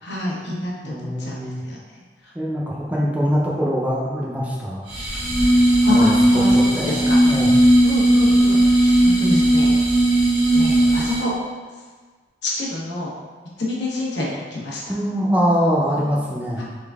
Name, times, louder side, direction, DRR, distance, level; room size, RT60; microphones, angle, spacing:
voice 1, 0.0-1.8 5.9-6.5 6.8-7.2 7.8-9.7 10.5-11.3 12.4-13.1 13.6-14.8 16.0-16.1 16.6-16.7, left 2 dB, 80° left, -5 dB, 1.1 m, -27 dB
voice 2, 0.8-1.6 2.3-4.8 5.1-5.2 5.9-6.1 6.5-7.5 14.9-16.6, equal, 10° right, -4 dB, 0.5 m, -23 dB
sound 1, 4.9-11.4, right 1 dB, 80° right, 1.3 m, -16 dB
3.9 x 3.5 x 3.5 m, 1.4 s
head